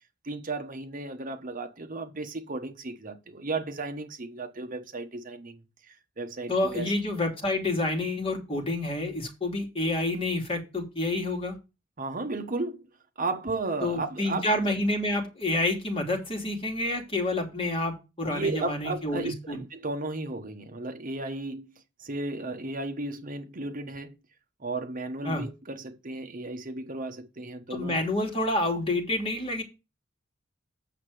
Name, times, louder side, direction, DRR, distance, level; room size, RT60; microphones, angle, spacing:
voice 1, 0.2-6.9 12.0-12.8 13.2-14.4 18.3-21.7 22.0-24.2 24.6-28.0, right 2 dB, 45° right, 1.2 m, -34 dB
voice 2, 6.5-11.6 13.8-19.6 25.2-25.5 27.7-29.6, left 2 dB, 30° left, 2.8 m, -28 dB
8.3 x 6.7 x 5.0 m
head